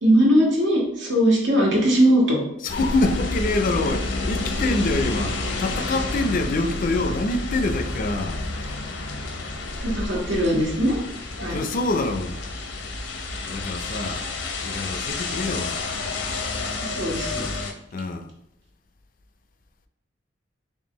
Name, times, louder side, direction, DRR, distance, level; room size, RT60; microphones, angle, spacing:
voice 1, 0.0-2.4 9.8-11.0 11.4-11.6 16.8-17.4, equal, 75° right, 1.5 m, -20 dB
voice 2, 2.6-8.4 11.5-12.4 13.5-14.3 14.6-15.8 17.9-18.3, left 2 dB, 45° left, 0.4 m, -25 dB
sound 1, 2.7-17.7, left 2 dB, 85° left, 0.7 m, -30 dB
4.4 x 3.4 x 3.0 m
head